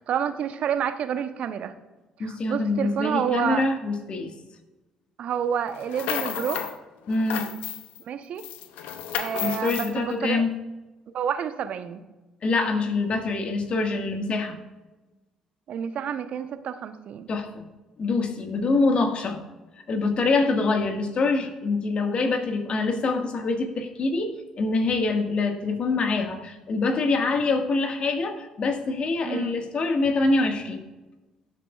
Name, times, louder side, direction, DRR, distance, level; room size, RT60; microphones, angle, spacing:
voice 1, 0.0-1.7 2.2-3.7 5.2-6.6 8.1-8.4 9.1-10.4 11.1-12.0 15.7-17.3 29.2-29.5, right 8 dB, 55° right, 10 dB, 0.8 m, -29 dB
voice 2, 2.2-4.3 7.1-7.5 9.4-10.5 12.4-14.6 17.3-17.7 18.0-19.4 19.9-30.9, left 3 dB, 45° left, 5 dB, 1.6 m, -25 dB
sound 1, 5.8-6.8 7.1-8.0 8.4-9.9, left 10 dB, 65° left, 0.7 m, -32 dB
17.5 x 7.2 x 2.4 m, 1.1 s
figure-of-eight pair, 50°, 3 cm